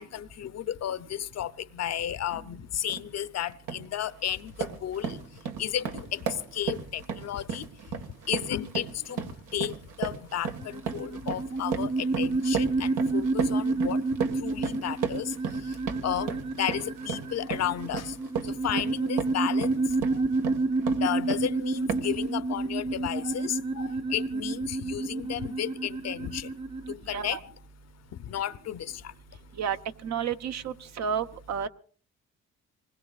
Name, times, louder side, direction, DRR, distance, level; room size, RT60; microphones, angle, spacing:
voice 1, 0.0-5.2 5.6-6.3 6.5-7.6 8.3-14.0 14.3-15.3 15.6-15.7 16.0-18.2 18.4-20.2 21.0-26.5 26.9-27.5 28.2-29.1, left 10 dB, 60° left, 0.8 m, -33 dB
sound 1, 2.9-3.1 3.5-3.9 4.3-21.5 21.9-22.2, right 7 dB, 85° right, 1.8 m, -35 dB
sound 2, 10.6-26.9, right 3 dB, 20° right, 0.9 m, -29 dB
voice 2, 27.1-27.4 29.6-29.8 30.0-31.7, right 7 dB, 60° right, 1.0 m, -31 dB
26.5 x 20.5 x 2.4 m
cardioid pair, 90°, 30 cm